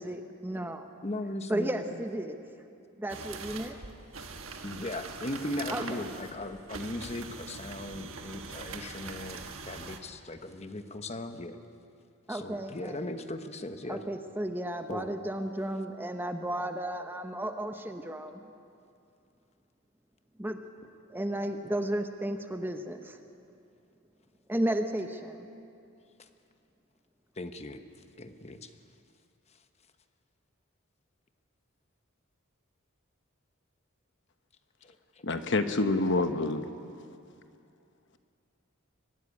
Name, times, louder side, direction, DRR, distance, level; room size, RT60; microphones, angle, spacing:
voice 1, 0.0-0.9 1.5-2.4 3.0-3.8 5.7-6.0 12.3-13.0 13.9-18.5 20.4-20.6 21.1-23.2 24.5-25.5, right 1 dB, 10° right, 6 dB, 0.8 m, -33 dB
voice 2, 1.0-2.0 4.2-4.3 4.6-11.6 12.3-14.0 14.9-15.1 26.2-26.3 27.4-27.8 28.2-28.7 34.8-35.0, left 1 dB, 30° left, 8 dB, 1.0 m, -38 dB
sound 1, 3.1-10.0, right 4 dB, 75° right, 1.4 m, -42 dB
voice 3, 35.2-36.7, left 2 dB, 60° left, 8 dB, 1.0 m, -27 dB
23.5 x 12.5 x 9.6 m, 2.6 s
head